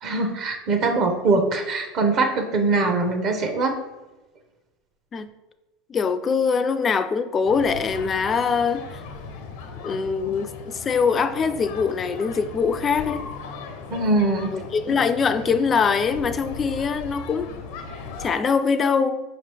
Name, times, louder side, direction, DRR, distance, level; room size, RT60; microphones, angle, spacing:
voice 1, 0.0-3.8 13.9-14.5, right 3 dB, 50° right, 4 dB, 0.7 m, -22 dB
voice 2, 5.9-9.0 9.8-13.2 14.5-17.5 18.2-19.2, left 5 dB, 30° left, 11 dB, 0.3 m, -23 dB
sound 1, 7.4-18.3, left 4 dB, 75° left, 0.7 m, -38 dB
5.3 x 3.0 x 3.3 m, 1.1 s
supercardioid pair, 110°, 0 cm